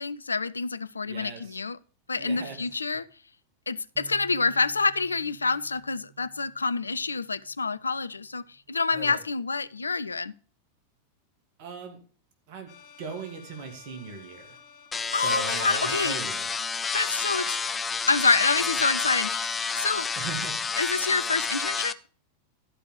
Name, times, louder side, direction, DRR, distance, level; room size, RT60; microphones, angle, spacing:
voice 1, 0.0-1.8 2.1-3.1 3.7-8.4 8.7-10.3 15.1-16.2 16.9-17.6 18.1-20.1 20.8-21.9, left 4 dB, 75° left, 0.4 m, -27 dB
voice 2, 1.1-1.6 2.2-2.6 8.9-9.2 11.6-12.0 12.5-12.7 13.0-14.6 15.1-16.4 20.2-20.7, right 5 dB, 45° right, 2.1 m, -39 dB
Bass guitar, 4.0-10.2, right 12 dB, 25° right, 1.3 m, -55 dB
sound 1, 12.7-16.6, left 6 dB, 40° left, 2.1 m, -53 dB
sound 2, 14.9-21.9, left 5 dB, 15° left, 0.5 m, -29 dB
12.5 x 5.2 x 6.6 m
figure-of-eight pair, 90°, 0 cm